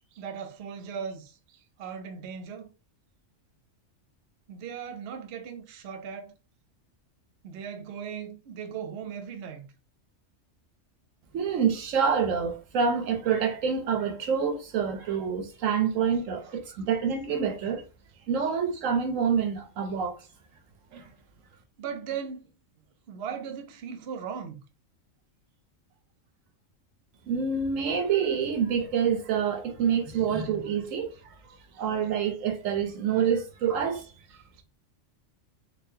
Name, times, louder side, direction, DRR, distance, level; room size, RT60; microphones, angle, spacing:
voice 1, 0.1-1.4 1.8-2.7 4.5-6.3 7.4-9.7 18.2-18.3 21.8-22.5 23.1-24.6 34.3-34.6, right 7 dB, 65° right, 0.8 m, -38 dB
voice 2, 11.3-17.8 18.3-20.2 20.9-21.0 27.3-31.1 31.8-34.0, right 7 dB, 85° right, 1.1 m, -27 dB
4.0 x 2.5 x 2.7 m
omnidirectional pair, 1.3 m